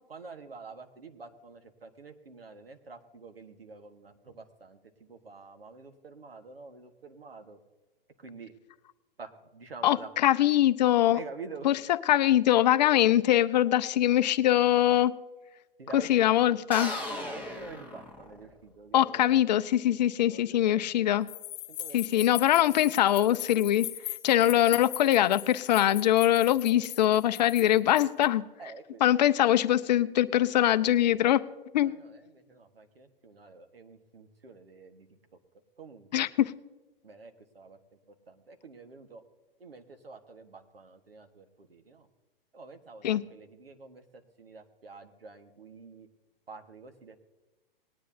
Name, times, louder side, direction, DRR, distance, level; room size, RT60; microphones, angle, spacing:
voice 1, 0.1-7.6 8.2-8.5 9.2-10.1 11.1-11.7 15.8-16.6 17.1-19.4 20.0-21.1 21.7-22.3 24.4-24.6 28.6-29.0 31.8-35.1 35.8-36.2 37.0-37.8 38.3-39.2 39.6-42.1 42.5-46.1 46.5-47.2, right 4 dB, 80° right, 6 dB, 1.5 m, -48 dB
voice 2, 9.8-11.2 11.6-11.8 12.1-15.1 15.9-16.9 18.9-21.3 21.9-23.9 24.2-28.4 29.0-31.5 31.7-31.9 36.1-36.5 43.0-43.2, left 12 dB, 45° left, 14 dB, 0.6 m, -23 dB
sound 1, 16.7-18.6, left 1 dB, 5° right, 1.4 m, -37 dB
sound 2, 21.3-28.3, left 13 dB, 30° left, 1.7 m, -40 dB
19.5 x 10.0 x 2.7 m, 1.1 s
figure-of-eight pair, 110°, 29 cm